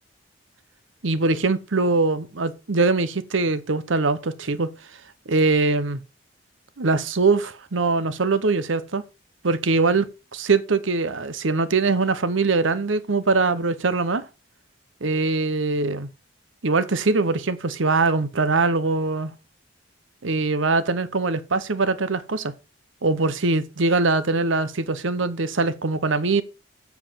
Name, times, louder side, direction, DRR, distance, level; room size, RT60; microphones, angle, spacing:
voice 1, 1.0-4.7 5.3-6.0 6.8-9.0 9.4-14.2 15.0-16.1 16.6-19.3 20.2-22.5 23.0-26.4, right 3 dB, 80° right, 0.9 m, -22 dB
7.4 x 7.0 x 5.6 m
head